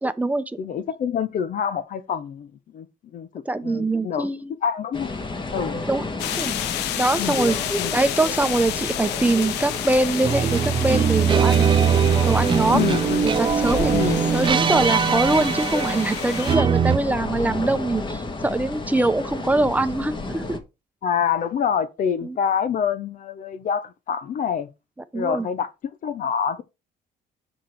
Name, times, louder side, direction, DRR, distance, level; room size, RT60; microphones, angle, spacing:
voice 1, 0.0-0.6 3.4-4.5 5.9-6.0 6.3-6.6 7.0-7.6 7.9-11.7 12.2-12.9 13.2-13.9 14.3-20.6 22.2-22.4 25.1-25.5, right 2 dB, 10° right, 1.0 m, -23 dB
voice 2, 0.6-2.9 3.1-4.3 4.6-5.2 5.5-5.8 7.2-8.0 12.7-13.4 13.9-14.2 21.0-24.7 25.1-26.6, left 7 dB, 50° left, 1.0 m, -26 dB
sound 1, 4.9-20.6, left 3 dB, 30° left, 1.8 m, -31 dB
sound 2, 6.2-16.6, left 11 dB, 90° left, 1.0 m, -31 dB
sound 3, 10.2-17.0, right 7 dB, 30° right, 0.5 m, -21 dB
7.4 x 6.1 x 4.7 m
cardioid pair, 110°, 17 cm